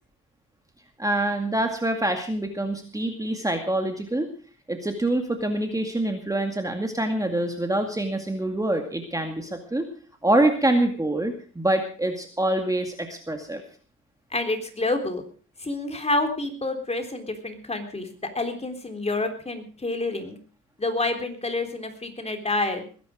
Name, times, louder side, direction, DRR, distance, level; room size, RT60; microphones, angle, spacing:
voice 1, 1.0-4.3 4.7-9.9 10.2-13.6, right 1 dB, 10° right, 5 dB, 2.2 m, -25 dB
voice 2, 14.3-15.2 15.6-18.1 18.3-20.4 20.8-22.8, left 2 dB, 20° left, 5 dB, 3.7 m, -28 dB
20.5 x 10.5 x 5.1 m, 0.41 s
cardioid pair, 90°, 30 cm